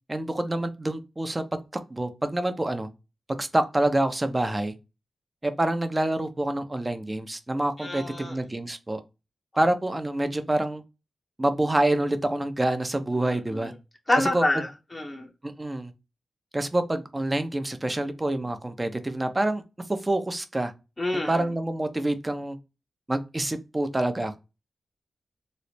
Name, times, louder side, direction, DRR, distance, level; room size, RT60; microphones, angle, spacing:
voice 1, 0.1-1.4 1.9-2.9 3.4-4.7 5.4-9.0 9.6-10.8 11.4-13.7 14.2-14.4 15.4-15.9 16.5-19.6 19.9-20.7 21.1-22.6 23.1-24.3, right 1 dB, 25° right, 0.6 m, -27 dB
voice 2, 7.8-8.4 13.5-13.7 14.1-15.3 21.0-21.4, left 1 dB, 30° left, 0.7 m, -27 dB
3.2 x 2.0 x 4.1 m
cardioid pair, 45°, 0 cm